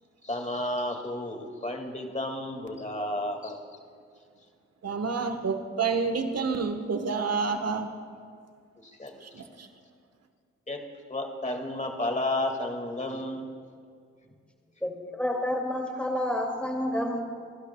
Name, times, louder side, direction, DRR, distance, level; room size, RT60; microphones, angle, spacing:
voice 1, 0.2-3.6 8.8-9.1 10.7-10.8 11.1-13.5, left 1 dB, 25° left, 3 dB, 2.0 m, -32 dB
voice 2, 4.8-7.9 9.2-9.7, right 5 dB, 55° right, 7 dB, 1.2 m, -29 dB
voice 3, 14.8-17.2, left 1 dB, 5° left, 2 dB, 2.4 m, -29 dB
25.0 x 12.0 x 2.3 m, 2.2 s
supercardioid pair, 40°, 30 cm